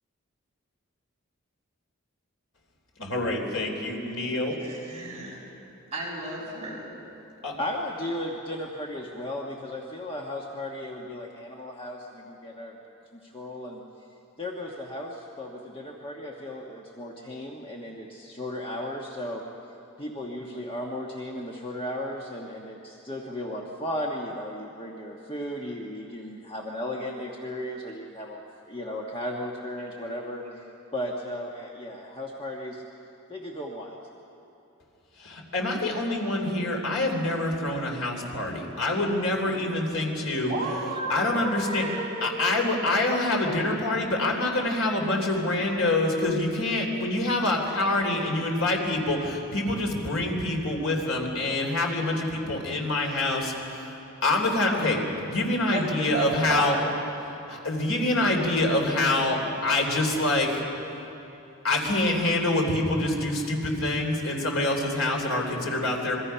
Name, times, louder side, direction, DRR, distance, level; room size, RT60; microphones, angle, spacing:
voice 1, 3.0-4.6 7.4-7.5 35.2-40.5 41.1-41.9 42.2-56.8 57.5-60.6 61.6-66.2, left 2 dB, 75° left, 1 dB, 3.4 m, -26 dB
voice 2, 4.6-5.4 5.9-7.0 40.4-42.3 55.7-56.8, right 2 dB, 30° right, -5 dB, 6.8 m, -32 dB
voice 3, 7.6-12.7 13.1-13.8 14.4-19.4 20.0-30.7 30.9-32.8 33.3-34.0, left 1 dB, 25° left, -1 dB, 1.3 m, -35 dB
26.0 x 23.0 x 5.7 m, 2.9 s
head